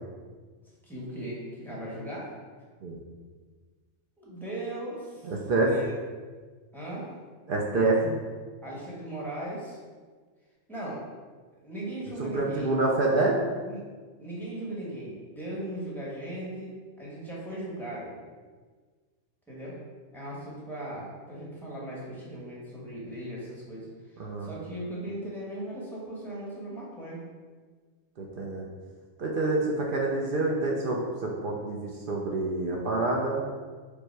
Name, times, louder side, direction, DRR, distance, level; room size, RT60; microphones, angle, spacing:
voice 1, 0.8-2.3 4.2-5.3 5.6-5.9 6.7-7.1 8.6-9.8 10.7-11.0 11.6-12.8 13.6-13.8 14.2-18.1 19.5-19.8 20.1-27.2, right 1 dB, ahead, -7 dB, 1.1 m, -38 dB
voice 2, 5.2-5.7 7.5-8.2 12.2-13.4 24.2-24.5 28.2-28.7 29.2-33.4, right 2 dB, 55° right, -1 dB, 0.6 m, -27 dB
5.2 x 2.1 x 4.4 m, 1.5 s
omnidirectional pair, 1.3 m